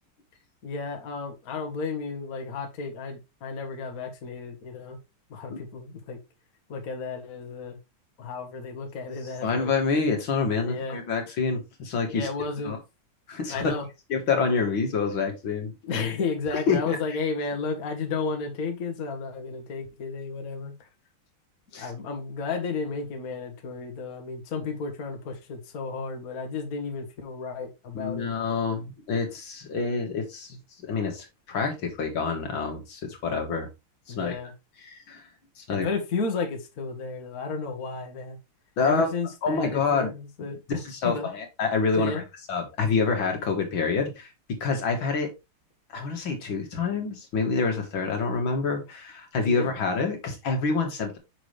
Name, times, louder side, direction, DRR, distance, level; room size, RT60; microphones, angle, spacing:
voice 1, 0.6-5.0 5.3-6.2 6.7-7.8 8.2-9.7 10.6-11.0 12.1-12.8 13.5-13.8 15.8-20.9 21.8-28.3 34.1-34.5 35.7-38.4 38.8-40.6 41.0-41.3 41.9-42.2 49.5-49.7, left 4 dB, 45° left, 4 dB, 1.7 m, -33 dB
voice 2, 9.4-12.3 12.7-12.8 13.3-13.8 14.1-15.7 16.7-17.0 21.7-21.9 27.9-33.7 34.2-34.4 34.8-35.2 35.6-35.9 38.8-39.1 39.4-40.1 40.8-42.2 42.5-45.3 45.9-51.2, left 4 dB, 70° left, 3 dB, 2.3 m, -27 dB
6.2 x 6.0 x 3.2 m, 0.24 s
omnidirectional pair, 2.3 m